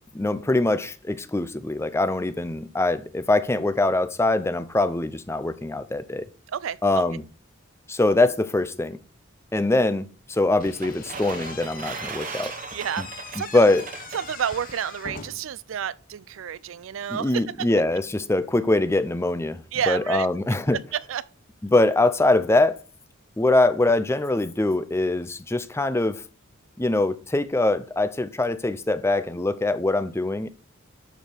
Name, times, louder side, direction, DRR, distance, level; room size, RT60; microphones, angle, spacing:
voice 1, 0.1-6.2 6.8-7.2 7.9-9.0 9.5-12.5 13.0-13.1 13.5-13.8 17.1-20.8 21.6-22.8 23.4-26.2 26.8-30.5, left 2 dB, 15° left, 0.5 m, -23 dB
voice 2, 6.5-7.0 12.4-13.0 13.3-13.6 14.1-17.7 19.7-20.3 20.7-21.3, right 8 dB, 75° right, 0.4 m, -30 dB
Slam / Squeak, 10.6-15.6, left 5 dB, 45° left, 1.0 m, -41 dB
sound 1, 10.6-14.8, right 5 dB, 40° right, 0.9 m, -38 dB
12.0 x 4.9 x 4.5 m
head